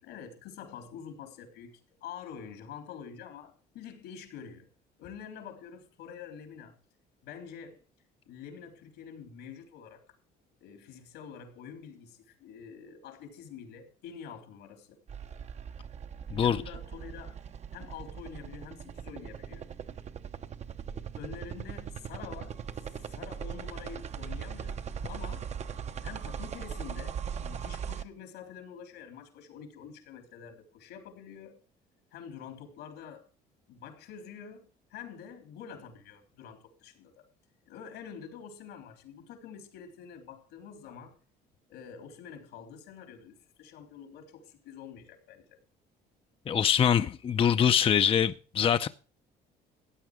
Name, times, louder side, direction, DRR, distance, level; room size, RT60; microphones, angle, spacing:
voice 1, 0.0-4.7 5.0-6.8 7.2-7.8 8.3-10.2 10.6-15.0 16.4-17.4 17.7-19.7 20.9-24.8 25.1-25.5 26.0-31.6 32.1-33.3 33.7-37.3 37.7-41.2 41.7-45.6, left 7 dB, 85° left, 3.6 m, -47 dB
sound 1, 15.1-28.0, right 7 dB, 40° right, 0.8 m, -39 dB
voice 2, 46.5-48.9, left 8 dB, 35° left, 0.6 m, -24 dB
15.5 x 8.9 x 4.9 m
cardioid pair, 110°, 17 cm